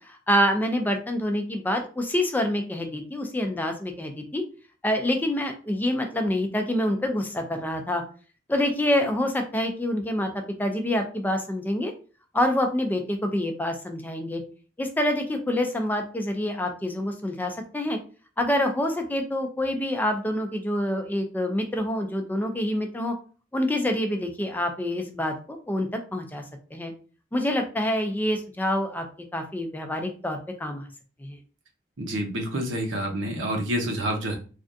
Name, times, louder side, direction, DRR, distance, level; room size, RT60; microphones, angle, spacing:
voice 1, 0.0-4.4 4.8-8.0 8.5-10.3 10.6-11.9 12.3-14.4 14.8-18.0 18.4-23.1 23.5-26.4 26.7-26.9 27.3-29.1 29.3-30.9 31.2-31.4, left 1 dB, 10° left, 5 dB, 0.4 m, -26 dB
voice 2, 32.0-34.4, equal, 80° right, 3 dB, 0.8 m, -28 dB
3.3 x 2.4 x 2.6 m, 0.37 s
head